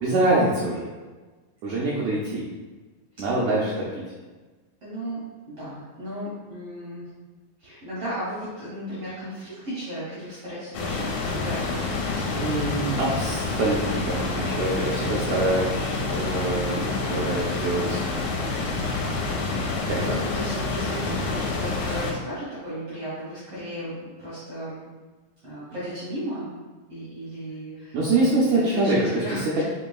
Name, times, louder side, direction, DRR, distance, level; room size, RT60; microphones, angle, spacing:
voice 1, 0.0-0.9 1.6-2.4 3.2-4.0 12.4-18.1 19.9-20.1 27.9-29.4, right 2 dB, 85° right, -6 dB, 1.5 m, -25 dB
voice 2, 3.2-3.6 4.8-7.0 7.6-13.5 19.6-24.8 25.4-26.5 26.9-29.6, equal, 70° right, -9 dB, 1.4 m, -35 dB
sound 1, 10.7-22.1, left 3 dB, 80° left, 2.2 m, -28 dB
5.1 x 2.9 x 2.3 m, 1.3 s
omnidirectional pair, 3.9 m